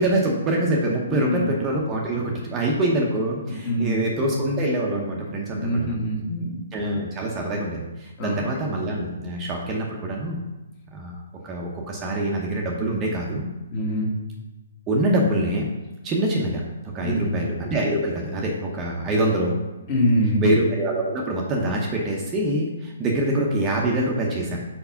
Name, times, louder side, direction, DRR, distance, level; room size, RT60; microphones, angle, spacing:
voice 1, 0.0-5.9 6.7-10.4 10.9-11.1 11.4-13.5 14.9-15.7 16.0-16.6 16.9-19.5 20.4-24.6, right 1 dB, 15° right, -2 dB, 0.8 m, -25 dB
voice 2, 1.1-1.5 3.6-4.0 5.6-6.6 8.2-8.4 13.7-14.1 17.0-17.4 19.9-20.5, equal, 30° left, -2 dB, 1.6 m, -24 dB
4.7 x 4.6 x 5.7 m, 1.1 s
hypercardioid pair, 160°, 0 cm